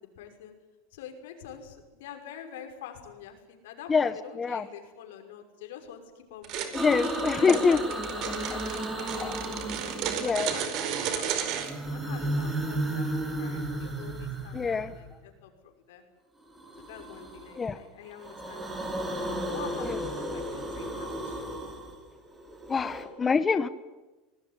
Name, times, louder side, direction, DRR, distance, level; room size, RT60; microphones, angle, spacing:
voice 1, 0.2-0.6 0.9-6.8 7.3-9.6 10.0-10.7 11.0-11.3 11.8-16.0 16.8-18.8 19.5-21.4, left 9 dB, 85° left, 5 dB, 5.9 m, -45 dB
sound 1, 6.4-11.7, right 9 dB, 45° right, 4.6 m, -33 dB
voice 2, 6.7-7.8 8.3-8.6 9.2-9.5 10.2-10.5 14.5-14.9 17.6-17.8 19.8-20.0 22.7-23.7, left 5 dB, 15° left, 13 dB, 0.9 m, -25 dB
sound 2, 6.7-10.7 11.4-15.2 16.5-17.7 18.0-23.0, right 1 dB, 15° right, 6.0 m, -34 dB
25.5 x 19.0 x 9.9 m, 1.1 s
supercardioid pair, 150°, 0 cm